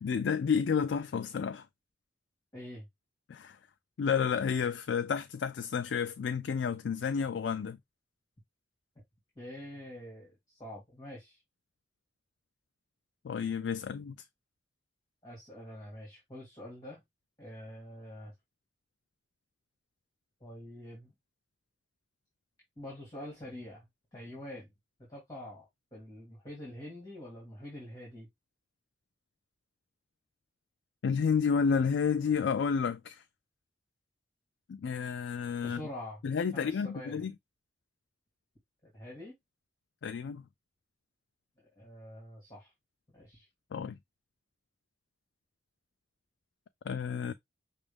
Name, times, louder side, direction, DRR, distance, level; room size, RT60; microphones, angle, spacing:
voice 1, 0.0-1.7 3.3-3.6 4.0-7.8 13.2-14.2 31.0-33.2 34.7-35.8 36.2-37.3 40.0-40.4 43.7-44.0 46.9-47.3, left 6 dB, 75° left, 0.4 m, -30 dB
voice 2, 2.5-2.9 9.4-11.4 15.2-17.0 17.4-18.3 20.4-21.1 22.8-23.8 24.1-24.7 25.1-28.3 35.6-36.2 36.5-37.3 38.8-39.3 41.8-42.7 43.1-43.5, left 1 dB, 20° left, 2.3 m, -45 dB
6.0 x 2.5 x 3.4 m
head